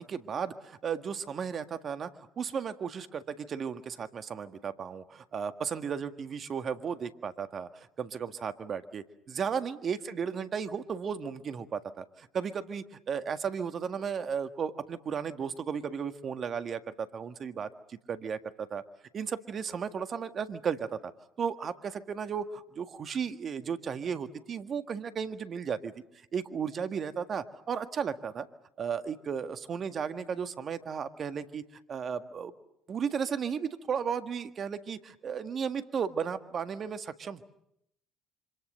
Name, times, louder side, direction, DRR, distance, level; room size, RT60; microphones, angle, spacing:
voice 1, 0.0-2.1 2.4-18.8 19.1-21.1 21.4-25.9 26.3-28.5 28.8-32.5 32.9-37.4, right 7 dB, 45° right, 10 dB, 1.8 m, -34 dB
27.0 x 26.0 x 6.7 m, 0.77 s
hypercardioid pair, 65°, 0 cm